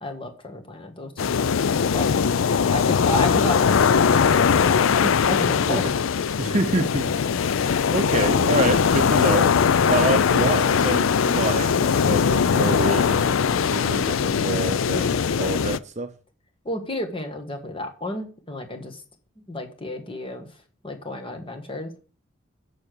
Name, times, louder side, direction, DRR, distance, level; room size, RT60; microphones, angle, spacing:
voice 1, 0.0-2.2 2.5-5.8 16.6-19.0 19.4-20.5 20.8-22.0, left 1 dB, 25° left, 4 dB, 1.5 m, -32 dB
sound 1, 1.2-15.8, left 6 dB, 75° left, 0.4 m, -20 dB
voice 2, 6.4-7.1 7.9-9.5 9.9-13.2 13.5-16.1, right 2 dB, 35° right, 8 dB, 0.7 m, -27 dB
6.9 x 6.4 x 6.7 m, 0.38 s
head